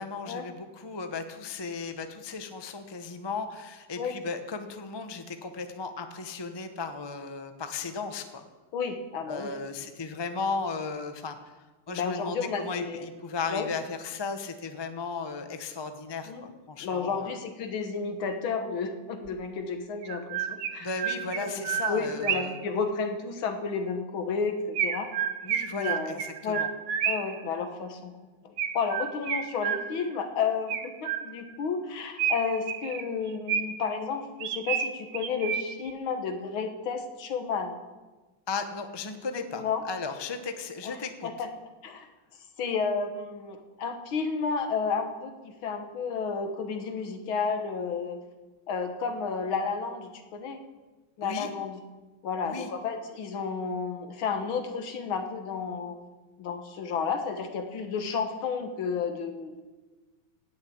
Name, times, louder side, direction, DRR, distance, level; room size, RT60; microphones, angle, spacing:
voice 1, 0.0-8.4 9.3-11.4 11.9-17.4 20.8-22.6 25.4-26.7 38.5-41.3 51.2-51.5 52.4-52.7, left 4 dB, 35° left, 7 dB, 0.4 m, -35 dB
voice 2, 8.7-9.5 11.9-13.1 13.5-13.7 16.3-16.5 16.8-20.9 21.4-25.1 25.7-26.7 27.0-28.1 28.4-37.7 39.5-39.8 40.8-41.0 41.2-41.5 41.8-42.1 42.6-48.2 48.7-50.6 51.2-51.8 52.2-56.0 56.4-59.5, left 5 dB, 70° left, 6 dB, 2.1 m, -32 dB
Chirp tweet, 19.3-19.4 20.0-22.7 24.8-27.4 28.6-30.2 30.7-31.6 32.2-33.9 34.4-35.9, right 8 dB, 60° right, 1.2 m, -31 dB
17.5 x 6.7 x 8.6 m, 1.2 s
omnidirectional pair, 2.4 m